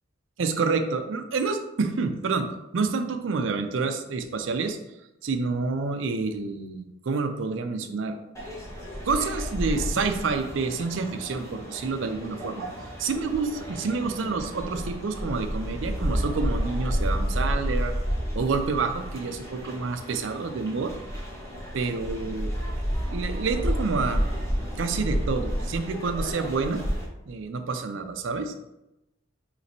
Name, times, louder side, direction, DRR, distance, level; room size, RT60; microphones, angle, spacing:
voice 1, 0.4-2.5 2.7-4.8 5.2-8.2 9.1-12.7 13.0-17.9 18.3-20.9 21.7-22.5 23.1-24.2 24.8-26.8 27.3-28.5, right 4 dB, 70° right, 7 dB, 0.5 m, -28 dB
sound 1, 8.3-27.0, equal, 15° left, 1.2 m, -31 dB
5.1 x 3.0 x 2.6 m, 0.90 s
head